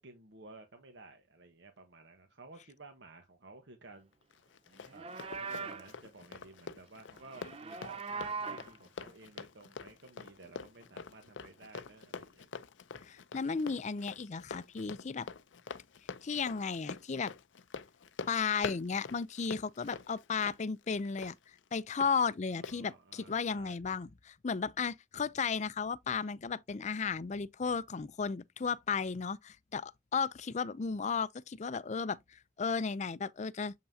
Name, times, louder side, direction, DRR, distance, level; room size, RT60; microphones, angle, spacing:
voice 1, 0.0-4.1 4.9-12.5 22.5-23.8, right 3 dB, 75° right, 1.2 m, -54 dB
Run, 4.3-22.1 22.6-22.8, left 5 dB, 90° left, 0.6 m, -46 dB
Livestock farm animals working animals, 4.8-5.9 7.2-8.7, right 4 dB, 30° right, 0.5 m, -40 dB
voice 2, 13.0-15.3 16.2-17.3 18.3-21.3 21.7-33.7, left 5 dB, 40° left, 0.5 m, -34 dB
7.5 x 5.6 x 2.7 m
head